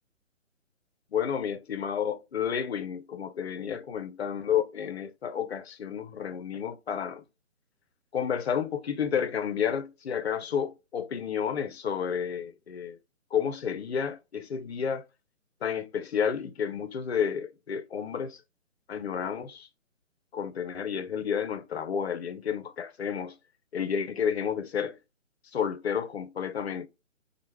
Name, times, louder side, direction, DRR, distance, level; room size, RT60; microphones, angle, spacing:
voice 1, 1.1-7.2 8.1-13.0 13.3-15.0 15.6-18.4 18.9-19.7 20.3-23.4 23.7-25.0 25.5-26.9, left 7 dB, 55° left, 0.5 m, -31 dB
3.1 x 2.1 x 3.1 m
figure-of-eight pair, 140°, 40 cm